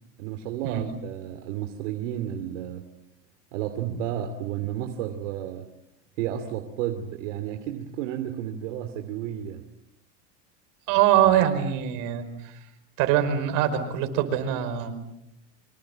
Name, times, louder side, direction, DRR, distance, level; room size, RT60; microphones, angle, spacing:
voice 1, 0.2-2.8 3.5-5.6 6.2-9.6, right 10 dB, 80° right, 6 dB, 2.8 m, -32 dB
voice 2, 10.9-12.6 13.0-15.0, right 10 dB, 60° right, 7 dB, 5.4 m, -23 dB
26.5 x 26.0 x 7.6 m, 0.83 s
supercardioid pair, 130°, 37 cm